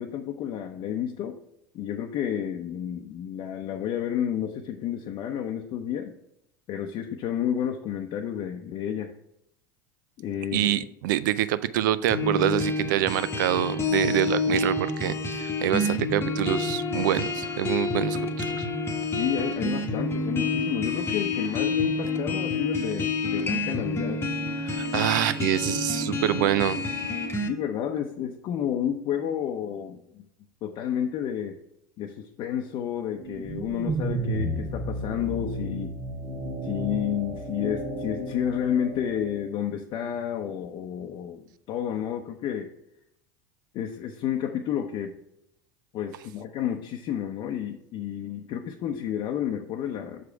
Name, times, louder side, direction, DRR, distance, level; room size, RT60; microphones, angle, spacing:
voice 1, 0.0-1.4 1.7-6.1 6.7-9.1 10.2-10.9 19.1-24.2 26.0-26.2 27.5-30.3 30.6-31.6 32.0-36.0 36.6-42.7 43.7-45.1 45.9-50.3, left 9 dB, 50° left, 2 dB, 0.7 m, -31 dB
voice 2, 10.5-18.6 24.6-26.8, right 13 dB, 75° right, 15 dB, 0.4 m, -26 dB
sound 1, 12.1-27.5, left 3 dB, 20° left, 1.0 m, -28 dB
sound 2, 33.2-39.5, right 1 dB, 45° right, 1.5 m, -33 dB
6.4 x 5.0 x 4.6 m, 0.78 s
hypercardioid pair, 90°, 11 cm